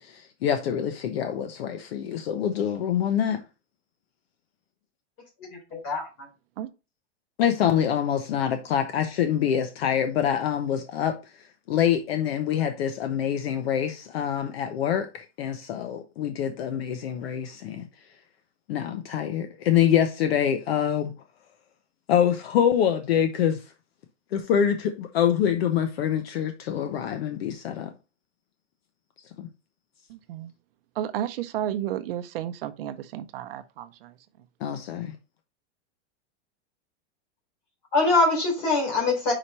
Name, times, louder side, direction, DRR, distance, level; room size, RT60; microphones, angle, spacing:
voice 1, 0.0-3.4 7.4-11.1 11.7-17.9 18.7-21.1 22.1-23.6 24.3-27.9 29.4-29.5 34.6-35.1, left 9 dB, 60° left, 0.9 m, -25 dB
voice 2, 5.4-6.3 37.9-39.3, left 3 dB, 35° left, 3.8 m, -24 dB
voice 3, 30.1-30.5 31.0-34.1, right 11 dB, 55° right, 0.6 m, -32 dB
5.6 x 5.0 x 4.2 m
supercardioid pair, 175°, 34 cm